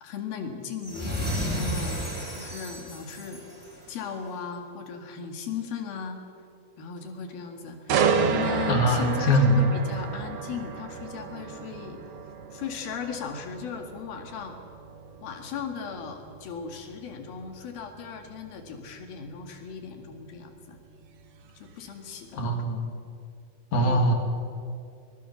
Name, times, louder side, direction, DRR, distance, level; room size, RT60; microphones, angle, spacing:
voice 1, 0.0-2.0 2.3-3.4 3.9-6.2 6.8-12.0 12.5-14.6 15.2-20.8 21.6-22.7 23.8-24.1, left 6 dB, 75° left, 5 dB, 3.9 m, -37 dB
sound 1, 0.8-4.1, equal, ahead, 5.0 m, -32 dB
sound 2, 7.9-21.7 22.2-22.4, right 6 dB, 60° right, 1.7 m, -32 dB
voice 2, 8.7-9.6 22.3-22.9 23.7-24.1, equal, 55° left, 3 dB, 3.8 m, -22 dB
24.0 x 20.0 x 7.2 m, 2.4 s
omnidirectional pair, 4.4 m